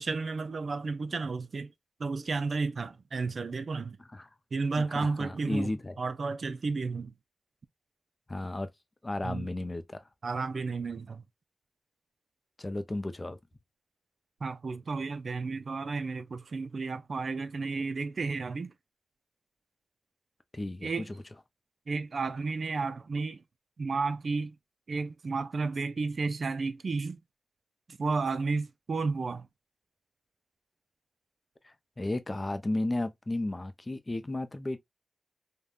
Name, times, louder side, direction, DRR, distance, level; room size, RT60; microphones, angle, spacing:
voice 1, 0.0-1.7 2.0-4.0 4.5-5.7 6.0-7.1 9.2-9.5 10.2-11.2 14.4-18.7 20.8-21.1 21.9-23.4 23.8-24.6 24.9-27.2 27.9-29.5, right 4 dB, 60° right, 0.4 m, -32 dB
voice 2, 4.8-6.0 8.3-8.7 9.0-10.0 12.6-13.4 20.5-20.9 31.6-34.8, left 2 dB, 30° left, 0.5 m, -33 dB
3.4 x 2.2 x 2.4 m
cardioid pair, 70°, 0 cm